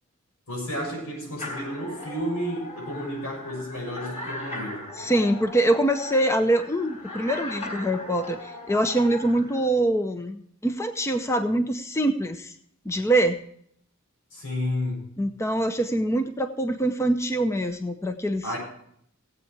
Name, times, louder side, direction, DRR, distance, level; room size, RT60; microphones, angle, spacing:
voice 1, 0.5-4.8 14.3-15.1 18.4-18.6, equal, 80° left, -1 dB, 7.0 m, -31 dB
sound 1, 1.4-9.6, left 1 dB, 30° left, 4.9 m, -38 dB
voice 2, 5.0-12.5 12.9-13.4 15.2-18.4, right 1 dB, 15° left, 8 dB, 0.7 m, -24 dB
17.0 x 8.4 x 4.7 m, 0.67 s
head